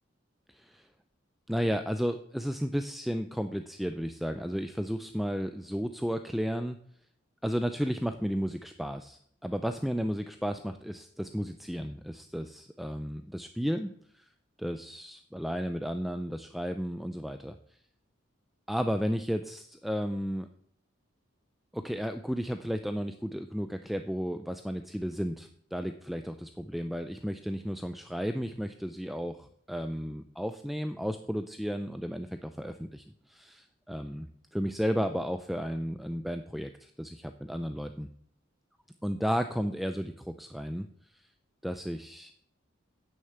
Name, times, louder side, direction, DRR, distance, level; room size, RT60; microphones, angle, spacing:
voice 1, 0.5-0.9 1.5-6.8 7.4-14.3 14.6-17.6 18.7-20.5 21.7-34.3 34.5-38.1 39.0-40.9 41.6-42.4, equal, ahead, 8 dB, 0.4 m, -33 dB
9.0 x 6.6 x 7.8 m, 0.65 s
head